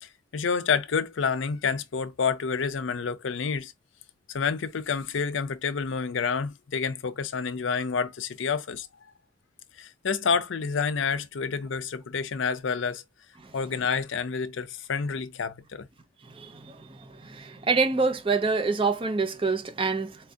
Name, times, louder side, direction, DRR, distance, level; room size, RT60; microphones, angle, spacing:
voice 1, 0.0-3.7 4.3-8.9 9.8-13.0 13.5-15.9, left 5 dB, 70° left, 0.5 m, -29 dB
voice 2, 16.4-16.8 17.2-20.2, right 4 dB, 25° right, 0.5 m, -26 dB
4.3 x 2.4 x 2.6 m
head